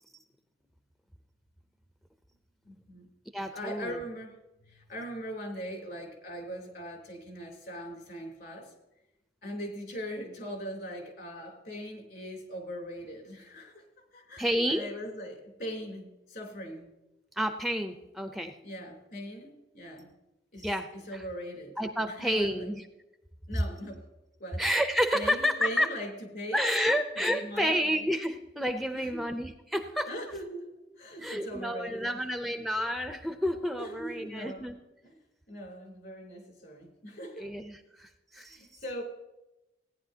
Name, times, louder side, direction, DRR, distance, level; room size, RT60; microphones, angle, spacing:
voice 1, 2.7-3.1 3.5-4.4 4.6-8.7 9.4-13.9 14.1-16.9 18.6-20.1 20.5-21.8 22.1-22.7 23.5-24.0 24.4-24.6 25.1-26.6 27.3-27.8 28.3-28.4 28.9-29.2 30.1-30.7 31.0-32.2 32.5-32.6 33.7-34.7 35.0-35.1 35.5-37.5 38.5-39.0, equal, 60° left, 1 dB, 3.4 m, -40 dB
voice 2, 3.3-4.0 14.4-14.9 17.4-18.6 20.6-21.2 21.8-22.8 24.6-25.9 26.5-30.1 31.2-34.8 37.4-38.8, equal, ahead, 7 dB, 0.5 m, -30 dB
17.0 x 10.0 x 2.8 m, 0.98 s
head